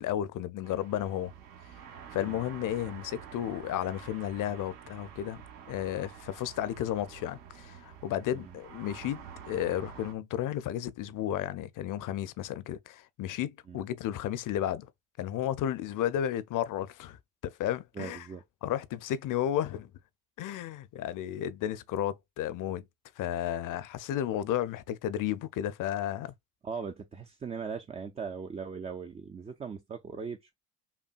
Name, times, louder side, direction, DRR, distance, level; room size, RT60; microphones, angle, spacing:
voice 1, 0.0-1.3 2.1-14.9 15.2-18.3 18.6-19.9 20.4-22.9 23.2-26.3, left 11 dB, 45° left, 0.6 m, -33 dB
sound 1, 0.6-10.1, right 8 dB, 80° right, 1.3 m, -48 dB
voice 2, 18.0-18.4 26.6-30.5, right 5 dB, 15° right, 0.3 m, -39 dB
5.5 x 2.2 x 2.4 m
supercardioid pair, 80°, 45 cm